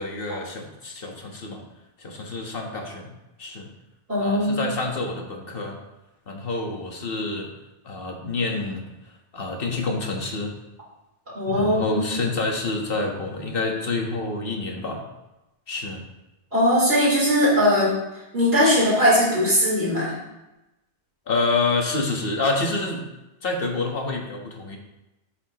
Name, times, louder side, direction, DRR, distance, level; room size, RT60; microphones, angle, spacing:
voice 1, 0.0-1.6 2.0-3.1 3.4-3.7 4.2-5.8 6.3-7.5 7.8-8.8 9.3-10.5 11.5-15.0 15.7-16.0 21.3-23.0 23.4-24.8, left 3 dB, 55° left, 1 dB, 1.6 m, -27 dB
voice 2, 4.1-4.7 11.3-12.1 16.5-17.9 18.3-20.1, equal, 60° right, -7 dB, 4.2 m, -20 dB
13.0 x 6.9 x 3.0 m, 0.97 s
omnidirectional pair, 1.2 m